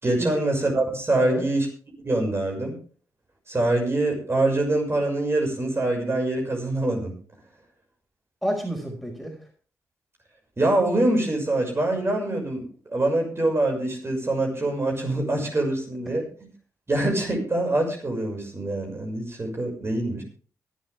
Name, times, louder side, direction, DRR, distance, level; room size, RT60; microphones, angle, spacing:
voice 1, 0.0-1.7 2.0-2.7 3.5-7.1 10.6-12.6 12.9-16.2 16.9-20.2, right 2 dB, 35° right, 1 dB, 6.3 m, -24 dB
voice 2, 8.4-9.3, equal, ahead, 1 dB, 5.7 m, -29 dB
23.5 x 7.9 x 3.6 m, 0.40 s
supercardioid pair, 45°, 7 cm